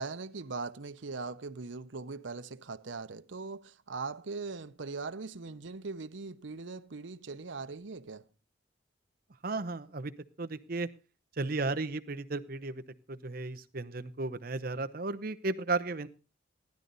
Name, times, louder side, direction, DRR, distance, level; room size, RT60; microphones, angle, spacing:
voice 1, 0.0-8.3, right 4 dB, 80° right, 0.8 m, -40 dB
voice 2, 9.4-10.1 10.4-10.9 11.4-12.8 13.1-16.1, right 3 dB, 50° right, 0.8 m, -34 dB
16.5 x 12.0 x 4.0 m
head